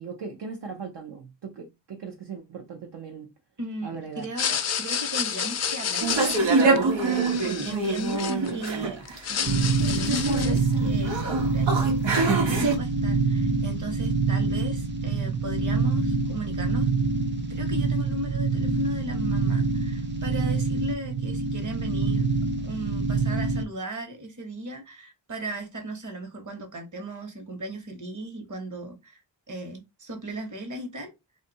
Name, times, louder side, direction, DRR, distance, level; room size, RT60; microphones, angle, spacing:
voice 1, 0.0-3.3 3.8-4.3, right 5 dB, 65° right, 0.7 m, -39 dB
voice 2, 3.6-9.0 9.3-16.9 17.5-22.3 22.6-29.2 29.5-31.1, right 1 dB, 40° right, 1.1 m, -36 dB
sound 1, 4.2-8.7 9.0-10.7, left 7 dB, 40° left, 0.4 m, -30 dB
sound 2, 6.0-12.8, right 3 dB, 85° right, 1.2 m, -25 dB
sound 3, 9.5-23.6, right 4 dB, 25° right, 0.5 m, -26 dB
2.6 x 2.5 x 4.0 m
wide cardioid pair, 115°, 44 cm